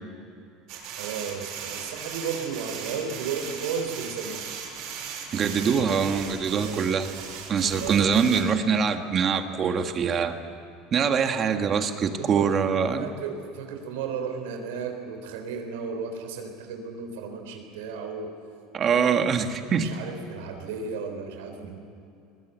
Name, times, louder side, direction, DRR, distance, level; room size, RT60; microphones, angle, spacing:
sound 1, 0.7-8.4, right 7 dB, 60° right, 6.4 m, -38 dB
voice 1, 1.0-4.4 6.6-6.8 7.6-8.0 11.9-12.5 13.0-18.3 18.9-19.1 19.6-21.8, right 6 dB, 90° right, 4 dB, 3.7 m, -34 dB
voice 2, 5.3-7.1 7.5-10.4 10.9-13.0 18.7-19.9, right 6 dB, 35° right, 6 dB, 1.7 m, -24 dB
22.0 x 21.5 x 8.2 m, 2.6 s
supercardioid pair, 125°, 0 cm